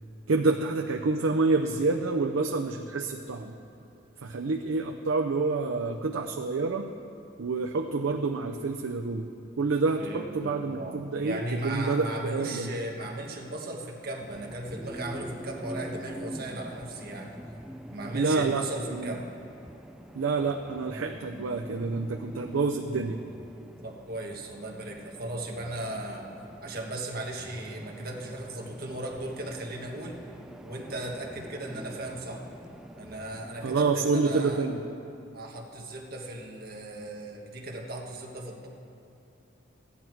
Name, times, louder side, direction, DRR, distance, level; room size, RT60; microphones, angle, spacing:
voice 1, 0.3-3.5 4.2-6.9 7.4-9.3 9.6-12.7 18.1-18.6 18.9-19.2 20.1-23.2 33.6-34.8, right 3 dB, 85° right, 3 dB, 0.5 m, -28 dB
voice 2, 10.0-17.3 17.9-19.3 23.8-26.3 26.6-30.2 30.6-32.4 33.0-34.6 35.3-38.7, right 1 dB, 50° right, 0 dB, 1.3 m, -37 dB
sound 1, 14.2-34.0, equal, 5° right, 0.3 m, -45 dB
14.0 x 10.0 x 4.6 m, 2.8 s
head